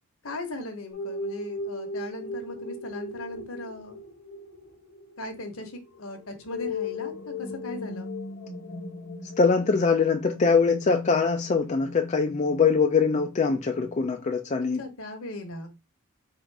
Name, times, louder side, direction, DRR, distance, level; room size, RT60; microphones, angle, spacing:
voice 1, 0.2-4.0 5.2-8.1 14.8-15.7, left 1 dB, 70° left, 1.1 m, -38 dB
sound 1, 0.9-14.0, left 3 dB, 90° left, 1.2 m, -37 dB
voice 2, 9.4-14.8, left 5 dB, 35° left, 0.4 m, -23 dB
3.9 x 2.5 x 4.6 m
head